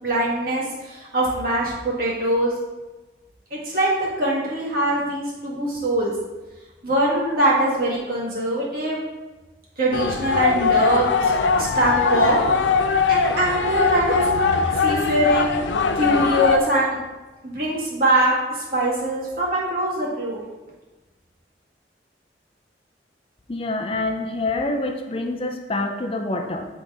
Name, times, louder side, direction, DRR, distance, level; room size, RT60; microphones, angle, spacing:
voice 1, 0.0-2.5 3.5-6.1 6.8-9.0 9.8-11.3 11.6-12.4 13.1-14.3 14.8-15.6 16.0-17.0 17.4-20.4, right 1 dB, 50° right, -6 dB, 1.8 m, -22 dB
sound 1, 9.9-16.6, left 5 dB, 90° left, 0.5 m, -21 dB
voice 2, 23.5-26.7, left 2 dB, 30° left, 3 dB, 0.5 m, -26 dB
8.3 x 4.0 x 3.6 m, 1.2 s
head